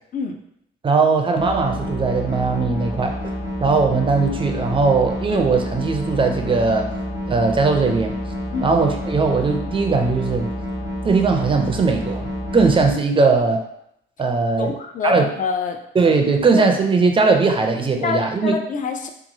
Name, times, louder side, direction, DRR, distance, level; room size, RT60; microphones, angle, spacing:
voice 1, 0.8-3.2 3.6-6.9 7.3-8.1 8.6-10.5 11.0-13.6 14.2-14.8 15.0-15.3 15.9-18.6, right 4 dB, 25° right, 4 dB, 0.4 m, -19 dB
sound 1, 1.4-12.9, equal, 75° left, 0.8 m, -28 dB
voice 2, 14.6-15.8 16.5-16.7 18.0-19.1, left 5 dB, 40° left, 5 dB, 0.4 m, -26 dB
2.9 x 2.3 x 2.6 m, 0.75 s
cardioid pair, 90°, 20 cm